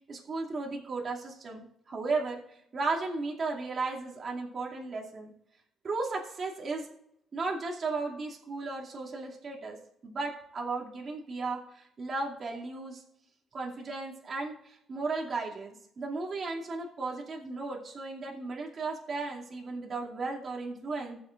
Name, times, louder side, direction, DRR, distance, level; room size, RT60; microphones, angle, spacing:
voice 1, 0.1-5.3 5.8-6.9 7.3-9.8 10.0-13.0 13.5-21.2, right 3 dB, 45° right, -2 dB, 2.5 m, -35 dB
19.5 x 7.0 x 2.5 m, 0.77 s
cardioid pair, 90°, 0 cm